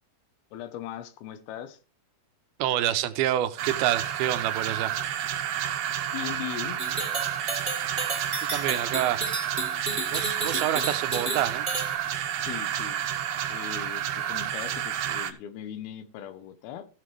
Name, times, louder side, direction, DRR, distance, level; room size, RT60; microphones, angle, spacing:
voice 1, 0.5-1.8 6.1-6.8 12.4-13.0 13.5-16.9, left 10 dB, 90° left, 2.9 m, -39 dB
voice 2, 2.6-4.9 8.4-9.2 10.1-11.7, right 12 dB, 85° right, 2.6 m, -27 dB
sound 1, 3.6-15.3, right 10 dB, 70° right, 2.1 m, -30 dB
sound 2, 6.8-11.9, right 3 dB, 30° right, 1.2 m, -32 dB
16.0 x 7.1 x 3.2 m
omnidirectional pair, 4.3 m